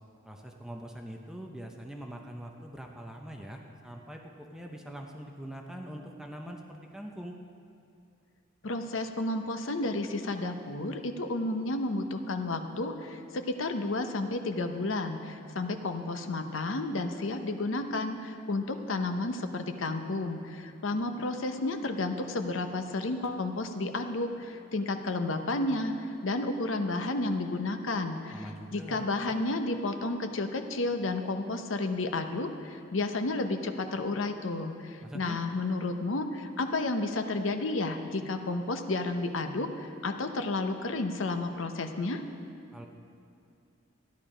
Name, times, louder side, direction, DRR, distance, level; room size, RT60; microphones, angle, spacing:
voice 1, 0.2-7.4 28.3-29.1 35.0-35.4 42.7-42.9, right 1 dB, 5° right, 1 dB, 0.7 m, -43 dB
voice 2, 8.6-42.2, left 2 dB, 80° left, 7 dB, 0.8 m, -32 dB
13.5 x 10.5 x 5.0 m, 2.5 s
head